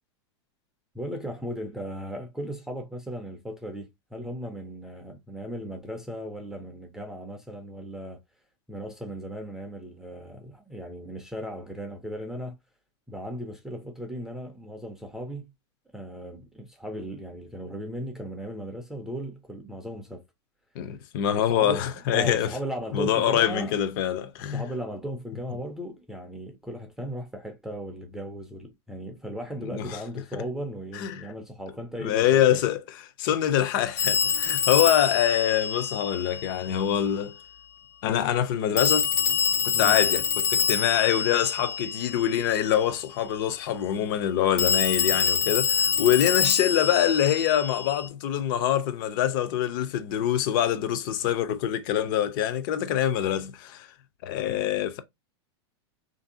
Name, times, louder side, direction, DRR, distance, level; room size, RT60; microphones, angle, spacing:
voice 1, 0.9-8.2 8.7-12.5 13.1-15.5 15.9-20.2 21.3-23.7 24.5-32.6 39.7-40.0, equal, 5° right, 0.4 m, -37 dB
voice 2, 20.8-22.5 22.9-24.6 29.6-30.0 30.3-30.4 30.9-31.3 32.0-37.3 38.0-39.1 39.6-53.9 54.2-55.0, left 10 dB, 50° left, 0.5 m, -25 dB
Telephone, 34.0-36.6 38.8-42.4 44.6-48.1, left 7 dB, 70° left, 1.2 m, -26 dB
3.2 x 2.6 x 2.6 m
supercardioid pair, 150°, 14 cm